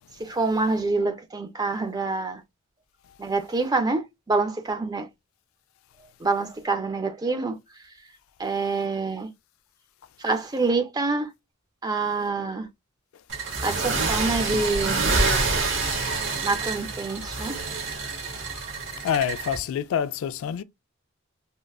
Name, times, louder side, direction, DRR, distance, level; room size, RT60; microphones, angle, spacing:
voice 1, 0.2-2.4 3.2-5.1 6.2-7.6 8.4-9.3 10.2-11.3 11.8-12.7 13.6-15.1 16.4-17.6, right 3 dB, 20° right, 0.4 m, -26 dB
sound 1, 13.3-19.6, right 3 dB, 60° right, 1.0 m, -27 dB
voice 2, 19.0-20.6, left 8 dB, 80° left, 0.3 m, -26 dB
3.8 x 2.1 x 2.3 m
head